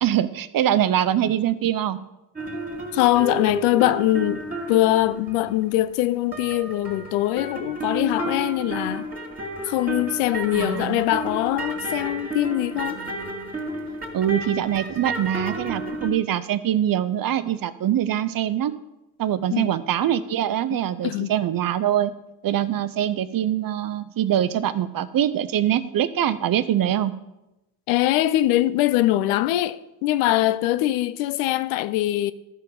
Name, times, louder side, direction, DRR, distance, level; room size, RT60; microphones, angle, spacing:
voice 1, 0.0-2.0 10.5-11.0 14.1-18.7 19.2-22.1 22.4-27.1, right 11 dB, 45° right, 0.7 m, -23 dB
sound 1, 2.4-6.0 6.3-16.1, right 2 dB, 15° right, 2.4 m, -32 dB
voice 2, 2.9-9.1 9.6-13.0 19.5-19.7 21.0-21.3 27.9-32.3, left 15 dB, 75° left, 0.6 m, -22 dB
13.0 x 4.5 x 5.4 m
hypercardioid pair, 50°, 49 cm